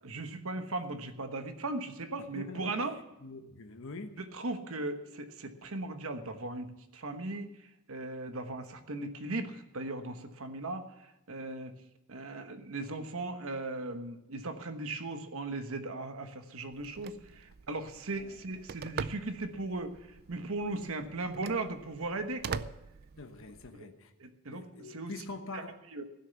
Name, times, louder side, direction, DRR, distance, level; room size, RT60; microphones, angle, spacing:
voice 1, 0.0-3.0 4.2-11.7 12.1-20.0 20.3-22.7 23.7-23.9 24.2-25.1 25.5-25.6 25.9-26.0, right 2 dB, 70° right, 8 dB, 1.2 m, -38 dB
voice 2, 2.3-2.7 3.2-4.2 18.1-18.3 23.2-24.1 24.5-25.7, left 3 dB, 65° left, 6 dB, 1.1 m, -44 dB
Telephone, 16.7-23.7, right 6 dB, 45° right, 0.4 m, -44 dB
16.0 x 6.6 x 9.4 m, 0.90 s
head